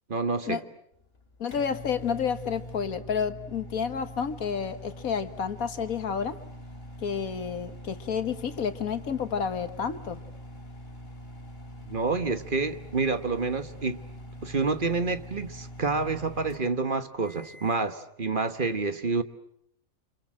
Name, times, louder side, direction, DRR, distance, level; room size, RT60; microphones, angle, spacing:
voice 1, 0.1-0.6 11.8-14.0 14.4-19.2, right 4 dB, 40° right, 1.4 m, -28 dB
sound 1, 0.9-17.9, equal, 45° left, 4.0 m, -44 dB
voice 2, 1.4-6.4 7.0-10.2, left 7 dB, 80° left, 1.9 m, -30 dB
29.0 x 26.5 x 7.5 m
omnidirectional pair, 1.5 m